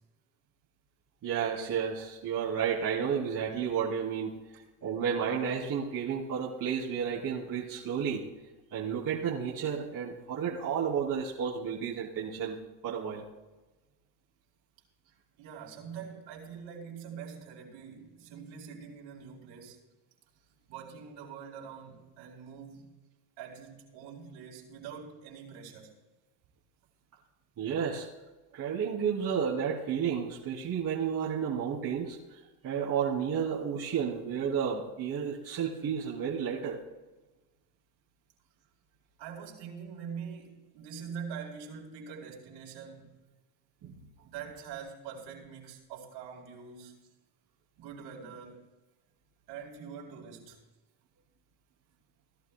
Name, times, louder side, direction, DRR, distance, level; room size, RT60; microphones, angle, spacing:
voice 1, 1.2-8.2 8.7-12.6 12.8-13.2 27.6-28.1 28.5-36.8 43.8-43.9, right 7 dB, 40° right, 2.7 m, -32 dB
voice 2, 15.4-19.8 20.7-23.0 23.4-26.0 39.2-43.2 44.2-47.0 47.8-48.7 49.5-50.6, right 6 dB, 60° right, 4.3 m, -44 dB
18.0 x 12.0 x 2.2 m
supercardioid pair, 100°, 50 cm